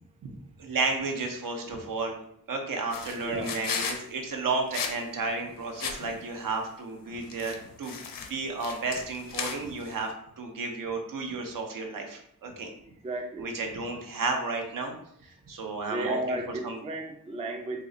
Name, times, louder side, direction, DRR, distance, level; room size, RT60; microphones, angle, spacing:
voice 1, 0.6-2.2 2.5-7.9 8.3-12.7 13.4-14.9 15.2-16.4 16.6-16.8, right 3 dB, 75° right, 3 dB, 0.7 m, -32 dB
sound 1, 2.9-4.0 4.7-5.0 5.3-5.4 5.7-6.2 7.2-10.0, left 6 dB, 85° left, 0.5 m, -35 dB
voice 2, 3.2-3.6 13.0-13.5 15.9-17.8, right 2 dB, 20° right, 3 dB, 0.3 m, -33 dB
3.7 x 2.1 x 3.7 m, 0.67 s
wide cardioid pair, 145°, 33 cm